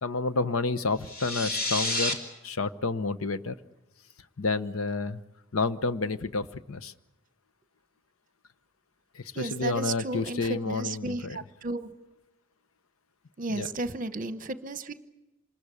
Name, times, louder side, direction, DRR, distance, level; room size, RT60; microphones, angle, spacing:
voice 1, 0.0-2.1 2.4-3.5 4.4-5.2 5.5-6.9 9.1-11.4 13.5-13.7, left 3 dB, 80° left, 14 dB, 0.9 m, -30 dB
sound 1, 1.0-2.1, left 2 dB, 45° left, 2.9 m, -29 dB
voice 2, 9.4-11.9 13.4-14.9, right 2 dB, 40° right, 12 dB, 1.0 m, -33 dB
26.0 x 20.5 x 8.4 m, 0.98 s
head